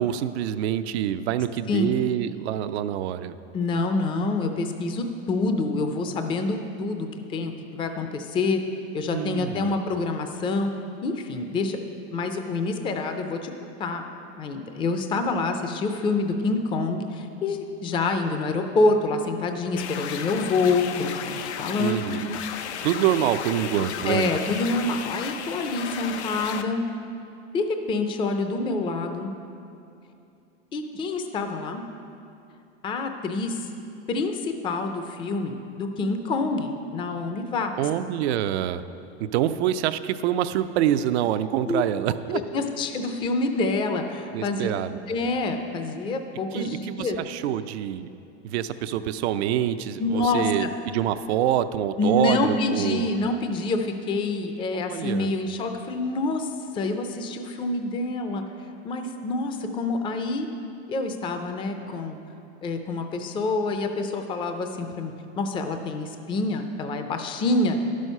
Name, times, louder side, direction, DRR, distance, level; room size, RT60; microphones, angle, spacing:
voice 1, 0.0-3.4 9.1-9.7 21.8-22.4 22.8-24.3 37.8-38.8 39.2-42.4 44.3-45.0 46.5-48.1 48.4-53.1 54.7-55.4, right 11 dB, 75° right, 12 dB, 0.5 m, -26 dB
voice 2, 3.5-8.6 8.9-10.7 11.0-11.8 12.1-14.0 14.4-22.0 24.1-26.8 27.5-29.3 30.7-31.9 32.8-33.6 34.1-37.7 41.7-41.8 42.3-44.7 45.1-47.2 50.0-50.7 52.0-58.4 58.8-60.5 60.9-62.2 62.6-67.8, left 3 dB, 15° left, 6 dB, 0.4 m, -27 dB
sound 1, 19.8-26.6, left 8 dB, 90° left, 0.7 m, -34 dB
11.0 x 6.3 x 5.4 m, 2.7 s
supercardioid pair, 135°, 33 cm